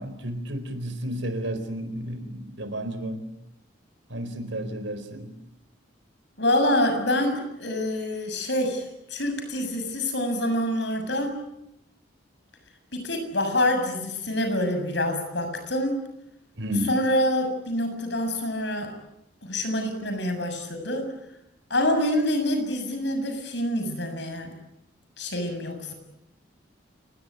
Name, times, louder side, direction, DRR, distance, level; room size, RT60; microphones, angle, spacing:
voice 1, 0.0-3.2 4.1-5.3 16.6-16.9, equal, 75° right, 10 dB, 4.3 m, -32 dB
voice 2, 6.4-11.4 12.9-16.0 16.9-18.9 19.4-21.1 21.7-24.5 25.2-25.9, left 1 dB, 65° left, 6 dB, 7.2 m, -26 dB
30.0 x 19.0 x 9.5 m, 0.83 s
head